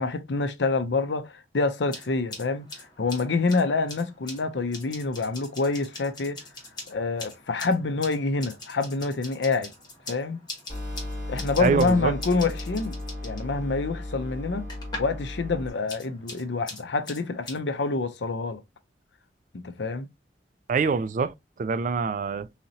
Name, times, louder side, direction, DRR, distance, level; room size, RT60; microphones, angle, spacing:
voice 1, 0.0-6.4 6.9-9.7 10.1-10.4 11.3-12.9 13.2-14.7 15.0-18.6 19.5-20.1, left 3 dB, 85° left, 0.6 m, -27 dB
sound 1, 1.8-15.2 15.5-17.6, left 2 dB, 25° left, 1.5 m, -43 dB
sound 2, 10.7-15.7, left 1 dB, 25° right, 2.5 m, -35 dB
voice 2, 11.6-12.1 20.7-21.3 21.6-22.5, right 5 dB, 45° right, 0.3 m, -24 dB
4.0 x 2.9 x 2.7 m
head